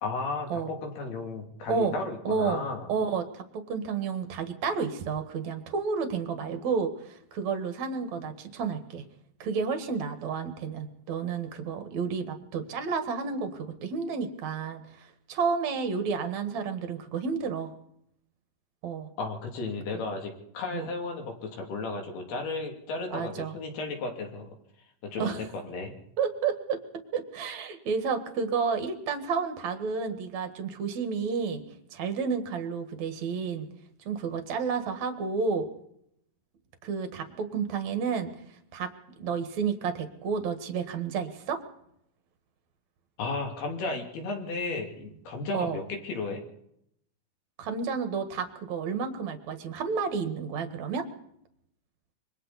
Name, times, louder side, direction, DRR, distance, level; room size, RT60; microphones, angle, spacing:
voice 1, 0.0-2.9 19.2-24.5 25.0-25.9 43.2-46.4, left 3 dB, 60° left, 2 dB, 4.7 m, -34 dB
voice 2, 2.2-2.6 2.9-9.0 9.4-17.7 18.8-19.1 20.7-20.9 23.1-23.5 25.2-25.4 26.2-26.8 27.1-31.6 31.9-33.7 34.1-35.7 36.8-38.3 38.7-38.9 39.2-41.6 45.5-45.8 47.6-51.1, right 5 dB, 50° right, 7 dB, 2.3 m, -31 dB
26.5 x 23.5 x 4.2 m, 0.75 s
omnidirectional pair, 5.1 m